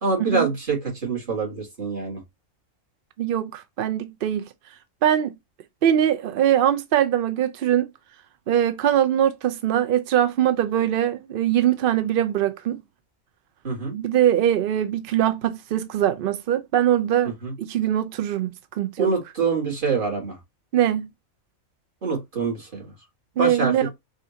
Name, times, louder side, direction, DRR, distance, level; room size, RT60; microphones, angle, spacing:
voice 1, 0.0-2.2 13.6-13.9 17.4-17.5 19.0-20.4 22.0-22.8 23.4-23.7, right 4 dB, 40° right, 1.9 m, -25 dB
voice 2, 3.2-4.5 5.0-5.4 5.8-7.9 8.5-12.8 13.9-17.3 17.6-19.1 20.7-21.1 23.4-23.9, right 11 dB, 70° right, 0.5 m, -22 dB
4.9 x 2.6 x 2.7 m
omnidirectional pair, 1.4 m